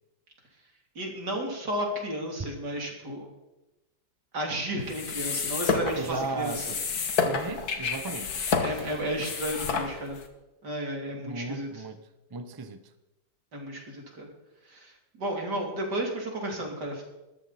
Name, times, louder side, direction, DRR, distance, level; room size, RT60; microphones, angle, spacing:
voice 1, 1.0-3.3 4.3-6.6 8.6-10.2 10.6-11.7 13.5-14.3 14.7-14.9 15.2-17.0, right 1 dB, 60° right, 4.0 m, -33 dB
sound 1, 4.8-10.3, left 5 dB, 55° left, 1.9 m, -30 dB
voice 2, 5.9-6.8 7.2-8.4 11.1-12.0 12.3-12.8, right 3 dB, 25° right, 0.5 m, -35 dB
20.5 x 13.5 x 4.3 m
omnidirectional pair, 2.0 m